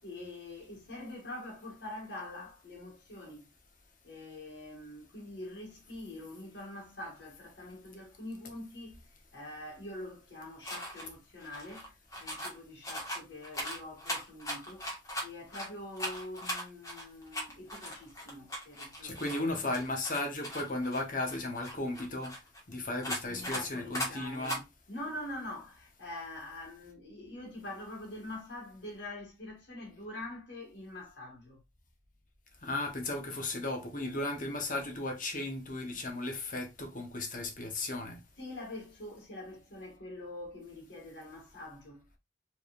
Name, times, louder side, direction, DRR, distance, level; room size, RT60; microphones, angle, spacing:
voice 1, 0.0-3.5 4.0-9.0 9.3-11.9 12.2-19.4 23.3-31.6 38.4-42.0, left 1 dB, 70° left, 1.8 m, -45 dB
sound 1, 10.6-11.1 11.4-12.6 12.8-15.7 15.9-19.4 19.7-22.6 23.0-23.6 23.9-24.1 24.4-24.6, equal, 20° left, 1.5 m, -39 dB
voice 2, 19.0-22.3 22.7-24.6 32.6-38.2, left 2 dB, 45° left, 1.1 m, -35 dB
4.7 x 3.5 x 2.4 m
head